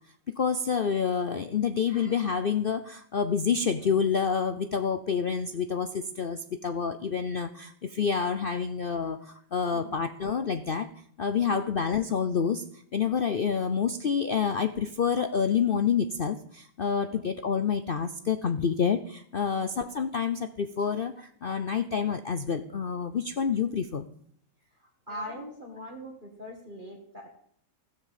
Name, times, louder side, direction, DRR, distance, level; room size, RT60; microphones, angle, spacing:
voice 1, 0.4-10.9 11.2-12.6 12.9-24.1 25.1-25.2, left 6 dB, 55° left, 10 dB, 0.6 m, -28 dB
voice 2, 25.1-27.3, equal, 30° right, -1 dB, 2.4 m, -41 dB
16.0 x 7.7 x 7.4 m, 0.63 s
omnidirectional pair, 1.7 m